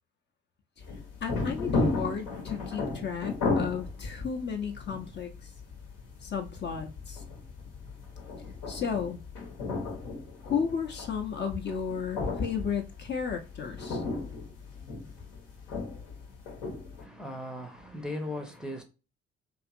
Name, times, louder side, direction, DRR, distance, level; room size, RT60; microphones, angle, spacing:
sound 1, 0.8-17.0, left 3 dB, 65° left, 0.9 m, -35 dB
voice 1, 1.2-5.5 6.2-7.2 8.7-9.2 10.4-14.0, left 6 dB, 35° left, 0.6 m, -33 dB
voice 2, 17.0-18.8, left 1 dB, ahead, 0.6 m, -38 dB
2.8 x 2.5 x 2.4 m
figure-of-eight pair, 45°, 31 cm